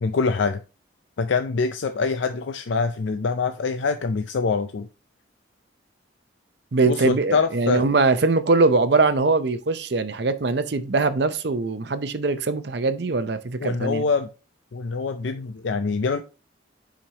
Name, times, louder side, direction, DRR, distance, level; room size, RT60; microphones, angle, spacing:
voice 1, 0.0-0.6 1.2-4.9 6.9-7.8 13.6-14.3 14.7-16.2, left 4 dB, 70° left, 0.4 m, -24 dB
voice 2, 6.7-14.0, right 3 dB, 60° right, 0.6 m, -22 dB
7.2 x 5.1 x 2.9 m
head